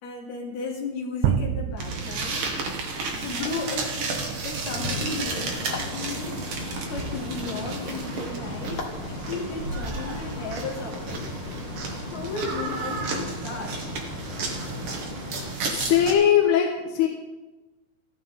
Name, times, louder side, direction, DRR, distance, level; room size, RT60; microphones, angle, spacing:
voice 1, 0.0-2.5 3.2-6.4 6.9-11.3 12.1-13.8, left 4 dB, 75° left, -2 dB, 4.7 m, -35 dB
sound 1, 1.2-3.2, right 9 dB, 90° right, 1.7 m, -28 dB
sound 2, 1.8-16.1, right 3 dB, 60° right, 3.5 m, -32 dB
sound 3, 4.7-15.6, left 3 dB, 45° left, 1.7 m, -37 dB
voice 2, 15.7-17.1, left 9 dB, 90° left, 1 dB, 3.4 m, -20 dB
30.0 x 11.0 x 3.8 m, 1.1 s
omnidirectional pair, 4.5 m